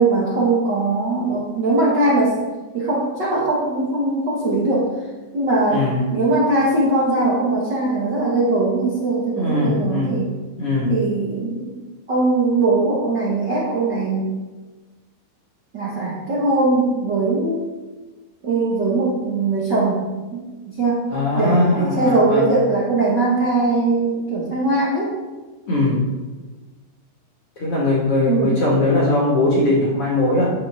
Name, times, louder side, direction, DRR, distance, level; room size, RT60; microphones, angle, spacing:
voice 1, 0.0-2.4 2.7-4.9 5.3-10.3 10.9-11.7 12.1-14.3 15.7-17.7 18.4-20.0 20.3-20.4 20.7-21.1 21.3-25.1 28.2-28.5, right 2 dB, 75° right, -6 dB, 0.9 m, -20 dB
voice 2, 5.7-6.1 9.3-10.2 10.6-10.9 21.1-22.5 25.7-26.1 27.6-30.5, left 2 dB, 45° left, -5 dB, 2.2 m, -20 dB
11.0 x 7.6 x 3.8 m, 1.3 s
omnidirectional pair, 5.0 m